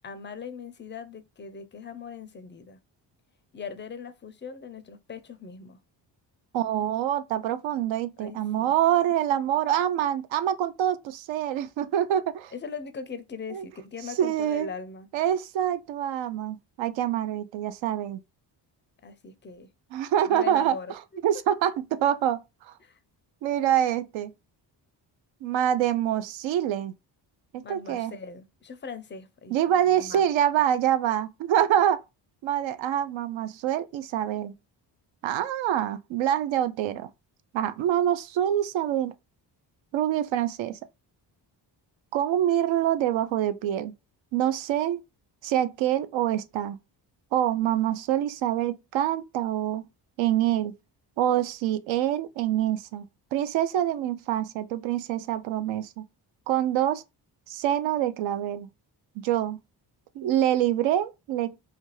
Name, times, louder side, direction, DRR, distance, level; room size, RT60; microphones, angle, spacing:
voice 1, 0.0-2.8 3.5-5.8 8.2-8.7 12.5-15.1 19.0-19.7 20.3-21.2 22.8-23.0 27.6-29.5 29.8-30.2, left 5 dB, 25° left, 0.4 m, -40 dB
voice 2, 6.5-12.5 13.5-13.7 14.2-14.7 15.1-18.2 19.9-20.8 21.2-22.7 23.4-24.3 25.4-26.9 27.5-28.1 29.5-32.0 32.4-34.5 35.2-37.1 37.5-39.1 39.9-40.8 42.1-43.9 44.3-45.0 45.4-46.8 47.3-49.9 50.2-50.8 51.2-53.1 53.3-56.1 56.5-57.0 57.5-58.7 59.2-59.6 60.1-61.5, right 11 dB, 70° right, 0.5 m, -26 dB
2.5 x 2.3 x 3.1 m
supercardioid pair, 55°, 49 cm